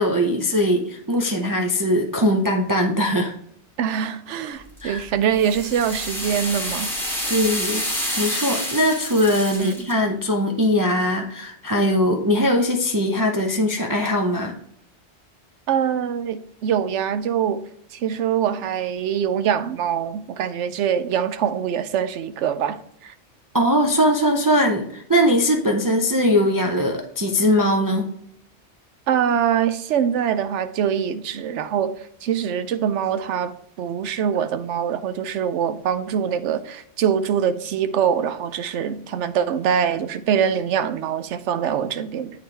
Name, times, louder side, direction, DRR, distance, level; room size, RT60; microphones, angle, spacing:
voice 1, 0.0-3.3 4.8-5.0 7.3-7.8 8.2-14.5 23.5-28.1, equal, 25° right, 0.5 m, -20 dB
voice 2, 3.8-6.9 9.6-9.9 15.7-17.6 17.9-22.8 23.0-23.1 29.1-42.3, right 8 dB, 85° right, 0.9 m, -24 dB
sound 1, 4.8-9.9, equal, ahead, 2.0 m, -28 dB
9.1 x 3.9 x 3.3 m
omnidirectional pair, 1.2 m